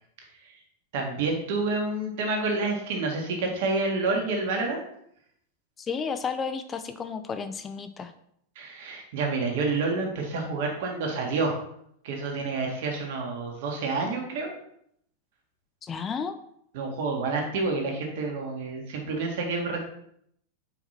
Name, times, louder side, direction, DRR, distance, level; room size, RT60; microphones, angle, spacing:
voice 1, 0.9-4.8 8.6-11.6 12.0-14.5 16.7-19.8, right 3 dB, 65° right, 1 dB, 1.8 m, -28 dB
voice 2, 5.8-8.1 15.8-16.4, left 6 dB, 25° left, 9 dB, 0.5 m, -32 dB
5.1 x 4.9 x 4.4 m, 0.70 s
hypercardioid pair, 105°, 0 cm